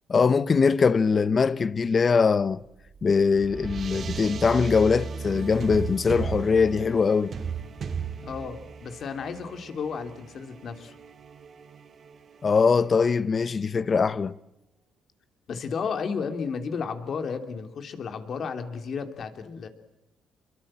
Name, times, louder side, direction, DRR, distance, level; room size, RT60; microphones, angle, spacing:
voice 1, 0.1-2.6 3.0-7.3 12.4-14.4, left 5 dB, 40° left, 1.0 m, -22 dB
sound 1, 2.7-13.3, right 5 dB, 50° right, 2.2 m, -37 dB
voice 2, 8.2-10.9 15.5-19.7, left 5 dB, 55° left, 3.1 m, -33 dB
27.5 x 22.5 x 7.6 m
cardioid pair, 90°, 0 cm